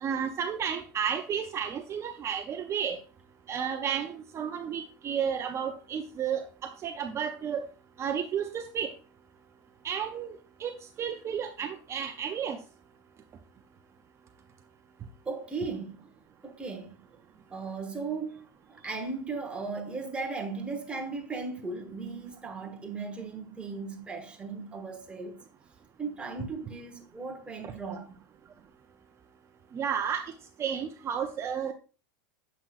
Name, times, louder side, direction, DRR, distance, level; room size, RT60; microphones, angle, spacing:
voice 1, 0.0-3.0 3.5-7.7 8.0-8.9 9.8-12.6 29.7-30.3 30.6-31.7, right 8 dB, 25° right, 0.5 m, -32 dB
voice 2, 15.2-16.0 16.4-16.9 17.5-25.4 26.0-28.1, right 4 dB, 10° right, 1.1 m, -37 dB
7.3 x 5.6 x 2.4 m
supercardioid pair, 135°, 11 cm